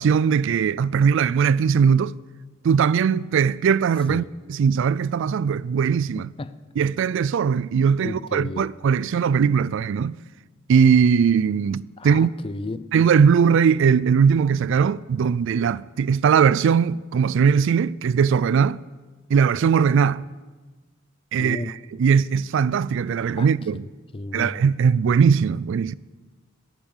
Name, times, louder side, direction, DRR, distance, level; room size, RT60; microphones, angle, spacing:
voice 1, 0.0-2.1 2.6-4.2 4.5-6.3 6.8-10.2 10.7-12.3 12.9-18.8 19.3-20.3 21.3-21.6 22.0-23.8 24.3-25.9, right 6 dB, 65° right, 0.3 m, -19 dB
voice 2, 6.2-6.5 8.0-8.7 12.0-12.9 21.4-21.7 23.3-23.5 23.8-24.7, left 2 dB, 25° left, 0.5 m, -33 dB
12.5 x 8.9 x 7.3 m
head